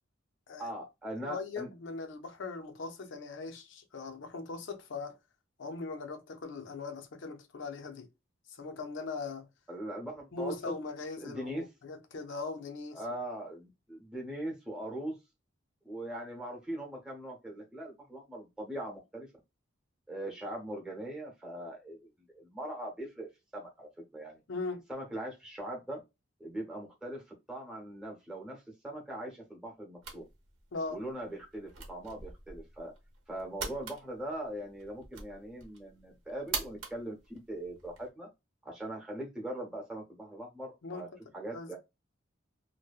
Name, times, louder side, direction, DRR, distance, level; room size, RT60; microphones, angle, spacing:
voice 1, 0.6-1.7 9.7-10.7 11.2-11.7 12.9-15.2 15.8-19.3 20.1-24.4 24.9-26.0 26.4-30.2 30.9-32.9 33.3-38.3 38.6-41.1 41.3-41.8, right 1 dB, 5° right, 0.8 m, -41 dB
voice 2, 1.2-5.2 5.6-8.1 8.5-9.5 10.3-13.0 24.5-24.8 30.7-31.0 40.8-41.1 41.5-41.8, left 3 dB, 65° left, 0.5 m, -40 dB
sound 1, 30.0-38.1, right 4 dB, 80° right, 0.8 m, -44 dB
2.6 x 2.1 x 2.3 m
head